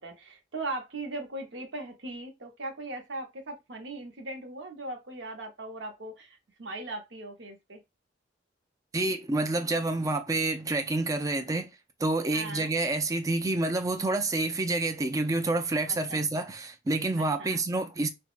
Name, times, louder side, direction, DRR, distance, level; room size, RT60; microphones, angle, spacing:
voice 1, 0.0-7.8 12.3-12.7 15.9-16.2 17.2-17.6, right 2 dB, 75° right, 0.8 m, -39 dB
voice 2, 8.9-11.7 12.0-18.1, right 2 dB, 20° right, 0.3 m, -28 dB
3.4 x 2.0 x 2.4 m
head